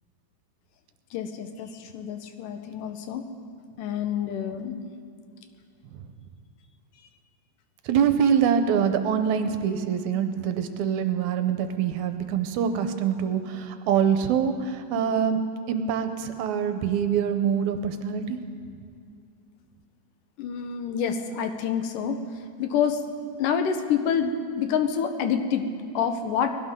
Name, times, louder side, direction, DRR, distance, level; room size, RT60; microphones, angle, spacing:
voice 1, 1.1-3.3 3.8-4.9 20.4-22.2 22.6-23.0 23.4-25.7 25.9-26.5, left 7 dB, 90° left, 7 dB, 2.5 m, -27 dB
voice 2, 7.9-15.4 15.7-18.4, right 7 dB, 75° right, 8 dB, 2.0 m, -25 dB
20.5 x 17.0 x 3.7 m, 2.4 s
omnidirectional pair, 3.7 m